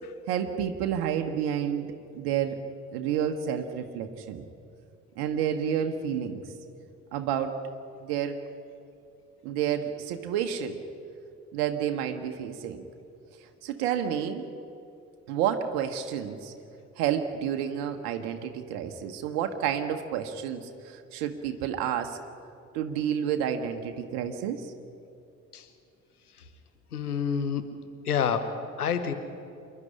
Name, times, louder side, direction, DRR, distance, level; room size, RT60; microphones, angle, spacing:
voice 1, 0.3-1.9 2.1-2.6 2.9-4.4 5.2-6.4 7.1-7.6 8.0-8.4 9.4-10.8 11.5-12.9 13.6-14.5 15.3-16.5 17.0-22.2 22.7-24.7, right 9 dB, 60° right, 6 dB, 1.3 m, -30 dB
voice 2, 26.9-27.7 28.0-29.1, left 7 dB, 80° left, 10 dB, 1.1 m, -28 dB
26.5 x 11.0 x 10.0 m, 2.6 s
figure-of-eight pair, 50°, 45 cm